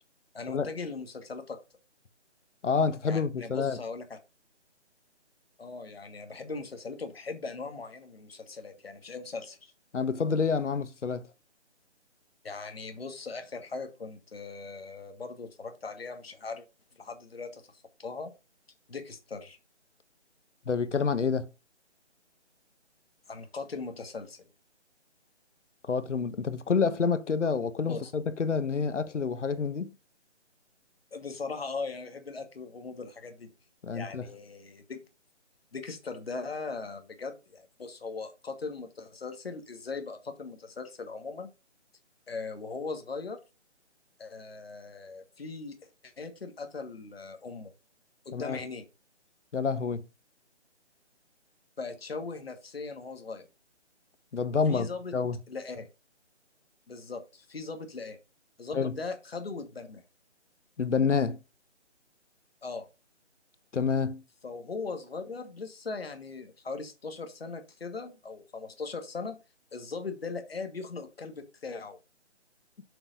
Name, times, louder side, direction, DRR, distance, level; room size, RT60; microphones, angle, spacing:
voice 1, 0.3-1.6 3.1-4.2 5.6-9.7 12.4-16.6 17.0-17.6 18.0-18.3 18.9-19.6 23.3-24.4 27.8-28.1 31.1-33.5 33.9-35.0 35.7-41.5 42.3-43.4 44.2-45.8 46.0-47.7 48.2-48.8 51.8-53.5 54.7-55.1 55.5-55.9 56.9-58.2 58.6-60.0 62.6-62.9 64.4-69.4 69.7-72.0, left 4 dB, 55° left, 1.7 m, -39 dB
voice 2, 2.6-3.8 9.9-11.3 20.7-21.5 25.9-29.9 33.8-34.3 48.3-48.6 49.5-50.0 54.3-55.4 58.7-59.0 60.8-61.4 63.7-64.2, left 5 dB, 85° left, 1.1 m, -28 dB
7.0 x 3.9 x 6.5 m
hypercardioid pair, 180°, 35 cm